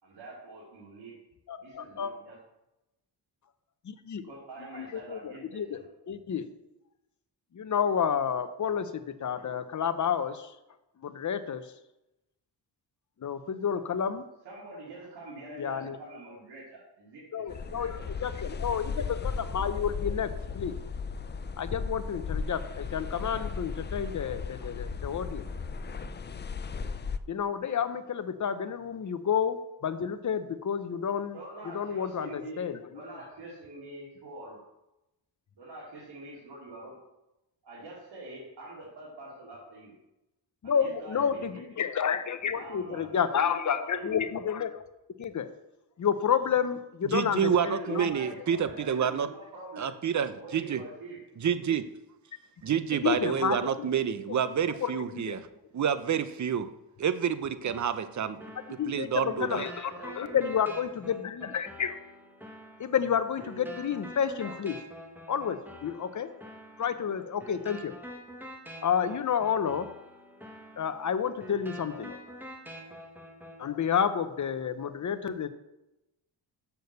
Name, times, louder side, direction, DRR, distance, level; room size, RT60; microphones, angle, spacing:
voice 1, 0.0-1.2 1.6-2.4 4.1-5.8 14.4-18.1 31.3-34.6 35.5-37.0 37.6-39.9 40.6-41.6 42.5-44.1 47.6-49.9 50.4-51.2 59.7-60.4, right 2 dB, 65° right, -6 dB, 3.1 m, -45 dB
voice 2, 1.5-2.1 3.8-4.3 4.7-5.8 6.1-6.5 7.5-10.5 11.0-11.6 13.2-14.2 15.6-16.0 17.3-20.7 21.6-25.5 27.3-31.4 31.7-32.8 40.6-44.8 45.2-45.5 46.0-48.1 53.0-53.9 54.8-55.4 58.8-59.9 60.2-62.0 62.8-64.8 65.3-66.3 66.8-68.0 68.8-69.9 70.8-72.4 73.6-75.5, left 7 dB, 40° left, 11 dB, 0.8 m, -30 dB
sound 1, 17.5-27.2, left 5 dB, 25° left, 0.4 m, -36 dB
voice 3, 47.0-49.3 49.8-50.8 51.4-51.9 52.6-55.5 55.7-56.7 57.0-58.4 58.9-59.6, right 8 dB, 40° right, 12 dB, 0.7 m, -28 dB
sound 2, 57.7-73.6, right 1 dB, 5° right, 1.5 m, -47 dB
6.9 x 6.3 x 6.8 m, 0.93 s
cardioid pair, 95°, 43 cm